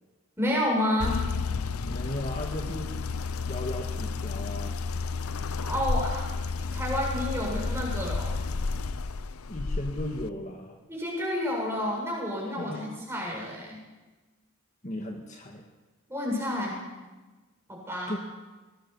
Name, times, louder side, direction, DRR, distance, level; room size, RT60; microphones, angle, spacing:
voice 1, 0.4-1.3 5.6-6.3 6.6-8.4 10.9-13.8 16.1-16.9 17.7-18.2, left 1 dB, 10° right, -2 dB, 7.5 m, -30 dB
sound 1, 1.0-10.3, left 4 dB, 80° left, 0.7 m, -31 dB
voice 2, 1.9-3.0 3.4-4.8 9.5-10.8 12.6-12.9 14.8-15.7 18.1-18.2, left 1 dB, 35° left, 2 dB, 1.8 m, -36 dB
22.0 x 18.5 x 7.1 m, 1.2 s
head